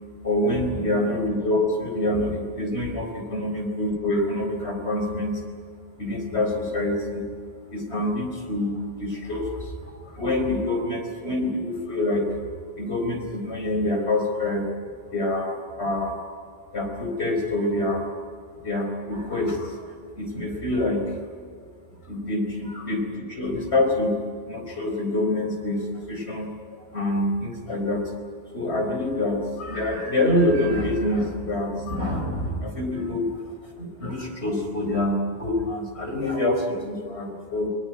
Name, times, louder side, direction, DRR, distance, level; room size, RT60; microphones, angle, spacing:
voice 1, 0.2-5.4 6.0-7.3 7.7-12.2 12.8-14.6 15.1-16.2 16.7-18.0 18.6-21.0 22.1-24.2 24.5-28.1 28.5-33.3 33.8-37.7, left 1 dB, 75° left, 3 dB, 4.6 m, -26 dB
21.0 x 21.0 x 9.4 m, 2.1 s
omnidirectional pair, 1.1 m